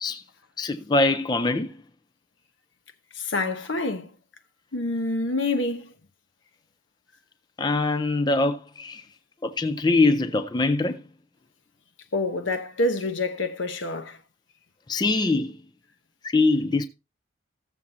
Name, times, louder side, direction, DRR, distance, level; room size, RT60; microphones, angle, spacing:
voice 1, 0.6-1.7 7.6-9.0 9.4-11.0 14.9-15.5 16.2-16.9, left 2 dB, 20° left, 0.4 m, -23 dB
voice 2, 3.1-4.1 4.7-5.9 12.1-14.2, left 2 dB, 75° left, 0.9 m, -27 dB
15.5 x 7.2 x 2.7 m
head